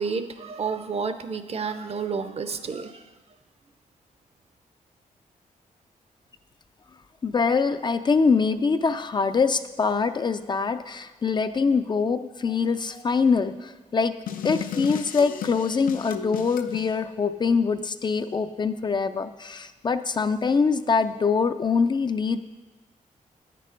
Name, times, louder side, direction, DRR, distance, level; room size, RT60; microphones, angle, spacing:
voice 1, 0.0-3.0, right 5 dB, 45° right, 10 dB, 0.6 m, -30 dB
voice 2, 7.2-14.1 14.4-22.4, left 5 dB, 35° left, 10 dB, 0.3 m, -24 dB
sound 1, 14.3-16.9, left 9 dB, 90° left, 0.5 m, -33 dB
8.9 x 6.7 x 5.0 m, 1.2 s
cardioid pair, 110°, 14 cm